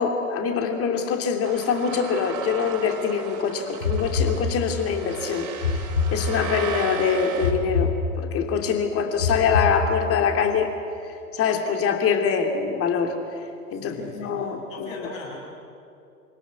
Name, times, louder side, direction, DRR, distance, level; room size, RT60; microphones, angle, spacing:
voice 1, 0.0-5.5 5.7-10.7 11.3-13.2 13.7-14.9, left 6 dB, 30° left, 4 dB, 2.9 m, -24 dB
sound 1, 1.4-7.5, right 5 dB, 40° right, 4.0 m, -35 dB
sound 2, 3.8-5.0 5.6-6.8 7.4-8.6 9.2-10.4, left 4 dB, 85° left, 2.5 m, -26 dB
voice 2, 13.7-15.4, left 3 dB, 55° left, 0 dB, 7.1 m, -40 dB
26.0 x 18.0 x 9.5 m, 2.6 s
figure-of-eight pair, 95°, 46 cm